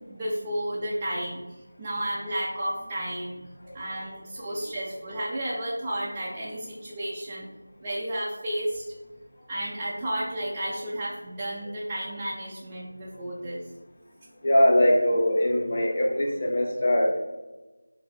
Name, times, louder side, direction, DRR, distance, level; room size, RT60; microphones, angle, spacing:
voice 1, 0.1-1.4 1.8-3.5 3.7-7.5 7.8-8.8 9.5-13.6, right 1 dB, 15° right, -7 dB, 0.4 m, -32 dB
voice 2, 14.4-17.2, left 1 dB, 35° left, 0 dB, 0.7 m, -22 dB
4.2 x 2.6 x 3.2 m, 1.2 s
figure-of-eight pair, 170°, 0 cm